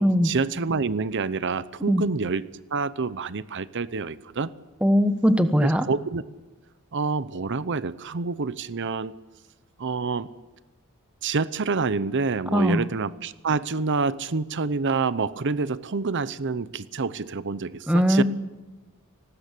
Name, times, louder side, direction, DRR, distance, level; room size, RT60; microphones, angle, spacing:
voice 1, 0.0-4.5 5.6-6.2 6.9-9.1 9.8-10.3 11.2-18.2, right 4 dB, 55° right, 16 dB, 0.7 m, -27 dB
voice 2, 4.8-5.9 12.5-12.8 17.9-18.2, equal, 5° right, 10 dB, 1.2 m, -20 dB
30.0 x 19.5 x 8.4 m, 1.2 s
head